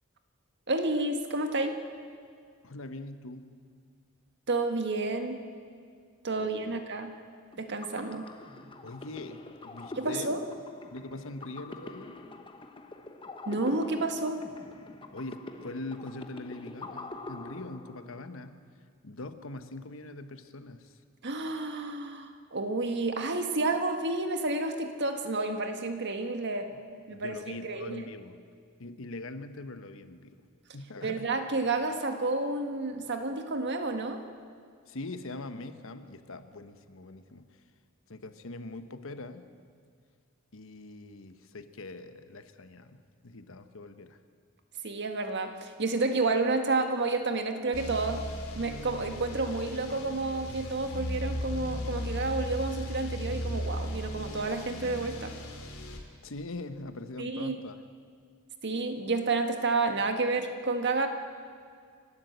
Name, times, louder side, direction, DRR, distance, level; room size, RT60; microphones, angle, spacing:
voice 1, 0.7-1.8 4.5-5.4 6.2-7.1 7.6-8.3 10.0-10.5 13.4-14.5 21.2-26.7 27.1-28.0 31.0-34.2 44.8-48.2 48.5-55.3 57.2-57.5 58.6-61.1, right 3 dB, 55° right, 6 dB, 1.7 m, -30 dB
voice 2, 2.6-3.6 6.4-6.8 8.8-10.4 10.9-12.2 15.1-18.6 19.0-21.0 26.6-26.8 27.1-28.4 28.8-30.4 30.7-31.3 34.9-37.5 38.1-39.5 40.5-44.2 56.2-57.8, left 2 dB, 70° left, 10 dB, 1.1 m, -42 dB
sound 1, 7.5-18.3, left 2 dB, 25° left, 1.1 m, -44 dB
sound 2, 47.7-56.0, equal, 90° left, 2.8 m, -37 dB
29.5 x 12.5 x 8.0 m, 2.1 s
head